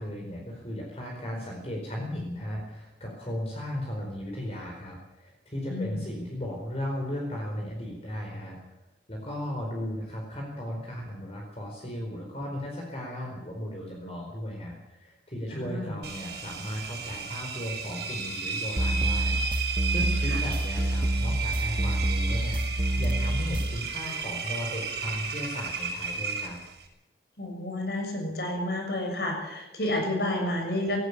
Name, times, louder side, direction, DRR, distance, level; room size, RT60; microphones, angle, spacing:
voice 1, 0.0-8.8 9.1-26.6, equal, 35° left, -1 dB, 4.7 m, -36 dB
voice 2, 5.7-6.1 15.5-16.0 20.3-20.4 27.4-31.0, left 1 dB, 65° left, 2 dB, 6.8 m, -30 dB
Engine, 16.0-26.9, right 5 dB, 70° right, 6.6 m, -34 dB
sound 1, 18.8-23.8, right 1 dB, 30° right, 0.8 m, -27 dB
18.0 x 17.5 x 8.6 m, 0.91 s
head